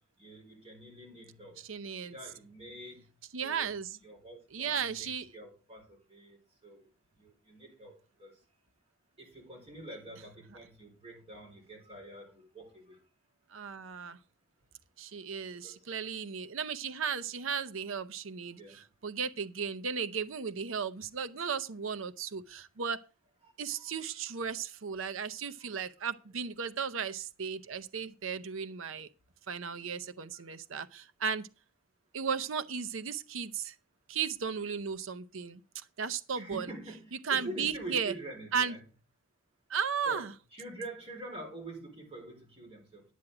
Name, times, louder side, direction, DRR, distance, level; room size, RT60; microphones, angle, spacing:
voice 1, 0.2-1.6 2.0-3.0 3.4-6.9 7.2-7.9 8.2-8.3 9.2-13.0 15.6-15.9 18.5-18.8 23.4-24.2 25.6-25.7 30.3-30.4 36.3-38.8 40.1-40.2 40.5-43.0, right 1 dB, 30° right, 4.4 m, -46 dB
voice 2, 1.6-2.1 3.3-4.0 4.5-5.3 13.5-14.2 15.0-23.0 23.6-29.1 29.5-31.5 32.1-33.8 34.1-35.6 36.0-36.7 37.2-38.1 38.5-38.7 39.7-40.3, right 6 dB, 75° right, 0.7 m, -35 dB
10.0 x 8.9 x 4.9 m
head